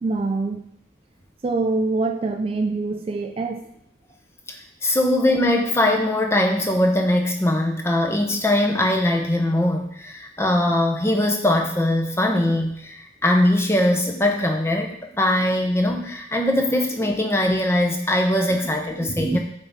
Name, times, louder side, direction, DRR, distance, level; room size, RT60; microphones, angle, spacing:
voice 1, 0.0-0.7 1.4-3.7 18.5-18.6 19.0-19.4, right 3 dB, 30° right, 5 dB, 0.3 m, -25 dB
voice 2, 4.8-19.4, left 1 dB, 15° left, 2 dB, 0.7 m, -21 dB
8.0 x 3.5 x 4.0 m, 0.75 s
head